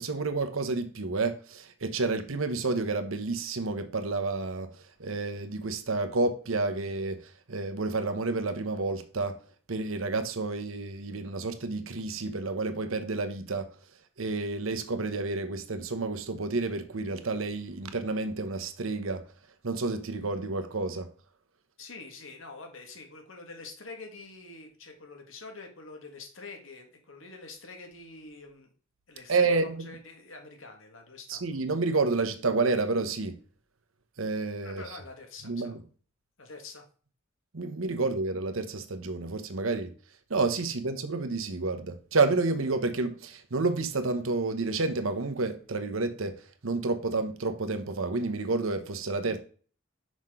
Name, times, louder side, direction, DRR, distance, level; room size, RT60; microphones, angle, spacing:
voice 1, 0.0-4.7 5.0-9.4 9.7-13.7 14.2-19.2 19.6-21.1 29.3-29.7 31.3-33.4 34.2-34.8 35.4-35.8 37.5-39.9 40.3-49.4, right 3 dB, 80° right, 1.0 m, -30 dB
voice 2, 21.8-28.7 29.1-31.6 34.6-35.7 36.4-36.8, left 3 dB, 70° left, 1.7 m, -46 dB
6.2 x 5.9 x 3.6 m
head